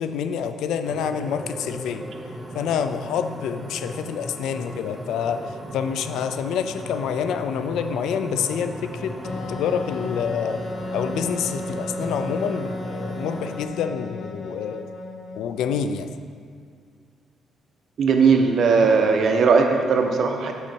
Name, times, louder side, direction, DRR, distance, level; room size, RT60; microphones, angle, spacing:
voice 1, 0.0-2.0 2.5-9.2 9.5-10.6 10.9-14.9 15.3-16.1, left 7 dB, 85° left, 9 dB, 0.4 m, -27 dB
sound 1, 0.8-13.6, equal, 15° right, 0.8 m, -37 dB
Wind instrument woodwind instrument, 9.2-15.7, left 1 dB, 55° left, 0.8 m, -34 dB
voice 2, 18.0-20.5, right 5 dB, 60° right, 3 dB, 0.9 m, -18 dB
8.8 x 5.6 x 4.5 m, 2.1 s
cardioid pair, 90°, 0 cm